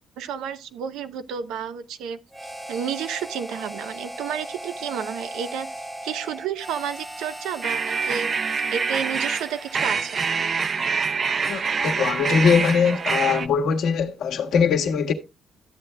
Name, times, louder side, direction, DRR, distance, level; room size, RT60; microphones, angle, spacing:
voice 1, 0.2-2.2 2.7-5.7 6.0-8.3 8.7-10.2, right 8 dB, 90° right, 0.7 m, -31 dB
Harmonica, 2.3-10.9, right 1 dB, 10° right, 1.0 m, -38 dB
sound 1, 7.6-13.5, right 5 dB, 45° right, 0.5 m, -25 dB
voice 2, 11.5-15.1, left 6 dB, 75° left, 1.6 m, -21 dB
13.5 x 7.9 x 2.3 m
cardioid pair, 90°, 0 cm